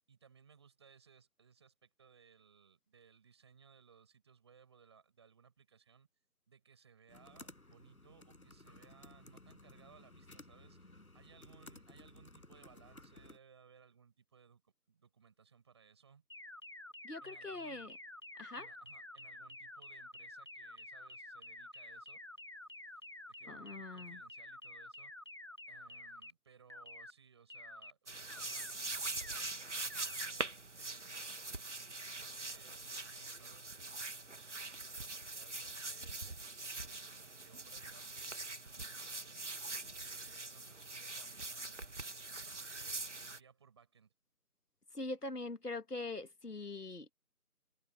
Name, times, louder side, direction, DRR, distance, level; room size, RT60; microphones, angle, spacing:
voice 1, 0.1-6.1 6.5-16.2 17.2-18.0 18.5-22.2 23.3-25.2 25.7-30.5 30.8-31.5 32.2-39.4 39.7-42.0 42.2-43.0 43.3-44.1, right 6 dB, 20° right, 7.5 m, -64 dB
sound 1, 7.1-13.4, left 2 dB, 70° left, 7.3 m, -57 dB
sound 2, 16.3-26.3 26.7-27.1 27.5-27.9 28.3-28.7 29.1-29.5 29.9-30.3, left 2 dB, 15° left, 1.8 m, -50 dB
voice 2, 17.0-17.9 18.4-18.7 23.5-24.2 44.9-47.1, left 2 dB, 90° left, 2.0 m, -43 dB
sound 3, 28.1-43.4, right 3 dB, 50° right, 1.9 m, -43 dB
figure-of-eight pair, 170°, 45 cm